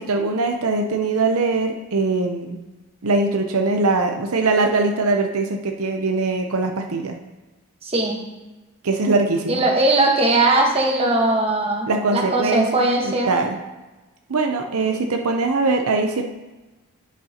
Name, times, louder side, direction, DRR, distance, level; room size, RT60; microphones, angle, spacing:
voice 1, 0.0-2.6 3.0-7.2 8.8-9.6 11.9-12.7 13.0-13.6 14.3-16.2, right 3 dB, 75° right, 4 dB, 0.7 m, -21 dB
voice 2, 7.8-8.2 9.5-13.4, right 2 dB, 25° right, 0 dB, 1.2 m, -19 dB
10.0 x 8.3 x 2.9 m, 1.1 s
head